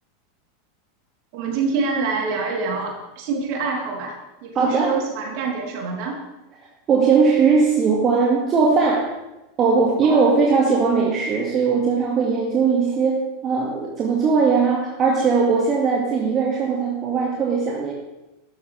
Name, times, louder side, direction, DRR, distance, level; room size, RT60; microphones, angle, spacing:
voice 1, 1.3-4.1 4.4-6.2 10.0-10.4, right 4 dB, 55° right, -1 dB, 3.5 m, -26 dB
voice 2, 4.5-5.0 6.9-9.1 9.6-17.9, right 5 dB, 35° right, -2 dB, 2.1 m, -19 dB
12.5 x 12.5 x 3.4 m, 1.0 s
figure-of-eight pair, 90°, 0 cm